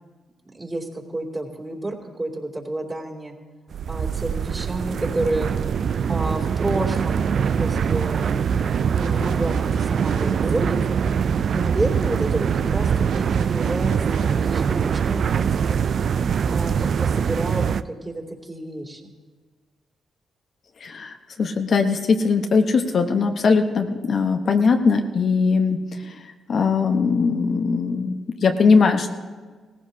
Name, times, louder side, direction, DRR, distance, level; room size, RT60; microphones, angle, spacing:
voice 1, 0.5-3.3 3.9-5.5 6.1-8.5 8.9-10.8 11.5-13.9 14.2-15.8 16.5-19.1, right 2 dB, 25° right, -1 dB, 2.7 m, -30 dB
sound 1, 3.7-17.8, right 7 dB, 60° right, 0.3 m, -23 dB
sound 2, 6.6-14.4, right 5 dB, 85° right, 1.1 m, -36 dB
voice 2, 20.8-26.2 26.5-29.1, left 5 dB, 60° left, 5 dB, 1.0 m, -20 dB
18.0 x 15.5 x 2.8 m, 1.5 s
supercardioid pair, 55°, 0 cm